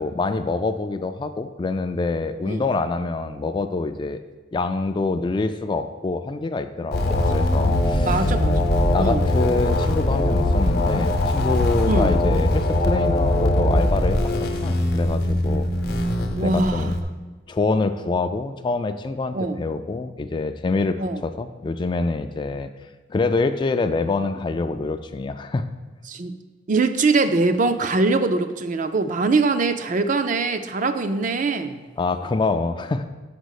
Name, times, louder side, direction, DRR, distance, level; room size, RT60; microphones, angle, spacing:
voice 1, 0.0-4.2 4.5-8.3 8.9-15.7 16.4-17.0 17.5-21.0 21.2-22.7 23.1-25.6 32.0-33.1, left 3 dB, 25° left, 9 dB, 0.3 m, -25 dB
sound 1, 6.9-17.0, left 1 dB, 60° left, 0.8 m, -21 dB
voice 2, 8.1-8.7 9.0-9.2 11.8-12.1 16.3-16.9 19.3-19.6 21.0-21.2 26.1-26.4 26.7-31.8, right 3 dB, 45° right, 9 dB, 0.4 m, -22 dB
5.6 x 5.1 x 6.4 m, 1.3 s
head